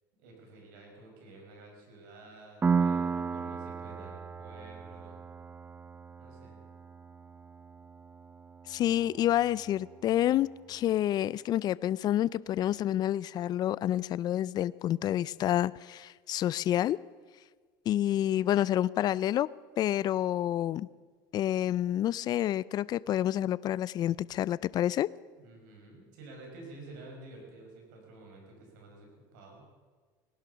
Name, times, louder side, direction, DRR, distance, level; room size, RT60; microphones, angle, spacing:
voice 1, 0.2-5.2 6.2-6.6 25.4-29.6, right 2 dB, 80° right, 1 dB, 5.6 m, -50 dB
Piano, 2.6-10.0, right 5 dB, 20° right, 0.5 m, -35 dB
voice 2, 8.7-17.0 17.9-19.5 19.8-20.9 21.3-25.1, left 12 dB, 40° left, 20 dB, 0.4 m, -28 dB
18.5 x 11.5 x 6.9 m, 1.5 s
supercardioid pair, 110°, 10 cm